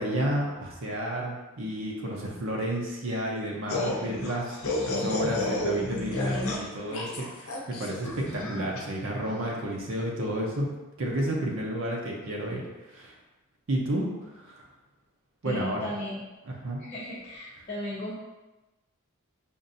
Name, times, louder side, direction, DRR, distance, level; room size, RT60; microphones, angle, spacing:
voice 1, 0.0-4.6 4.9-10.7 11.0-13.1 13.7-14.7 15.4-15.9 16.4-16.8, right 1 dB, 65° right, -2 dB, 0.6 m, -31 dB
sound 1, 3.7-8.8, left 1 dB, 75° left, 0.7 m, -31 dB
voice 2, 15.4-16.3 16.8-18.2, left 1 dB, 30° left, -9 dB, 0.6 m, -36 dB
5.3 x 2.5 x 2.6 m, 1.1 s
head